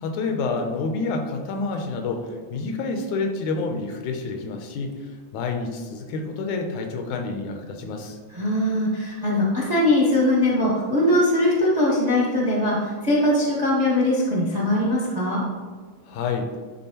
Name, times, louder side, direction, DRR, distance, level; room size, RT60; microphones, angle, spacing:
voice 1, 0.0-8.2 16.0-16.5, left 4 dB, 80° left, 4 dB, 1.9 m, -28 dB
voice 2, 8.3-15.4, left 1 dB, 50° right, -6 dB, 0.4 m, -21 dB
10.5 x 3.7 x 2.9 m, 1.5 s
omnidirectional pair, 3.5 m